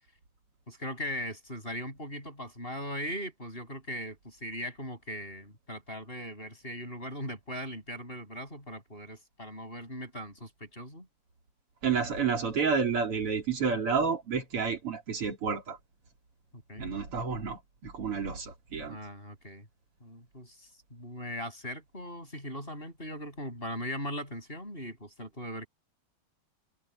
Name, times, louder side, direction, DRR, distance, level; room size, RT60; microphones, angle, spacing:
voice 1, 0.7-11.1 16.5-16.8 18.9-19.7 20.0-25.7, equal, 25° left, 7.6 m, -39 dB
voice 2, 11.8-15.8 16.8-19.0, right 5 dB, 90° right, 4.6 m, -30 dB
omnidirectional pair, 2.4 m